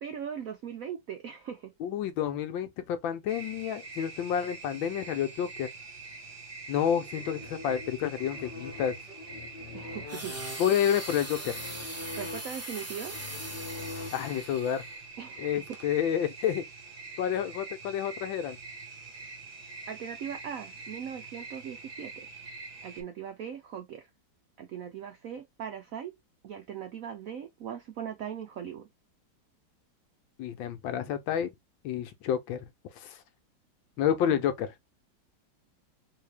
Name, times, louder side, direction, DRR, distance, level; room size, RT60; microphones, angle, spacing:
voice 1, 0.0-1.7 9.7-10.3 12.2-13.2 15.2-15.6 19.9-22.3 22.8-24.1 24.6-26.1 26.4-28.9 34.3-34.4, right 8 dB, 75° right, 0.7 m, -39 dB
voice 2, 1.8-5.7 6.7-9.0 10.6-11.6 14.1-14.8 15.4-16.6 17.2-18.6 30.4-31.5 31.8-32.6 33.0-33.2 34.0-34.7, left 9 dB, 80° left, 1.4 m, -29 dB
sound 1, 3.3-23.0, right 4 dB, 35° right, 1.0 m, -45 dB
sound 2, 7.1-14.6, left 2 dB, 35° left, 1.2 m, -44 dB
sound 3, 10.1-15.0 15.7-15.8, right 1 dB, 20° right, 0.4 m, -41 dB
4.0 x 2.8 x 3.3 m
omnidirectional pair, 2.2 m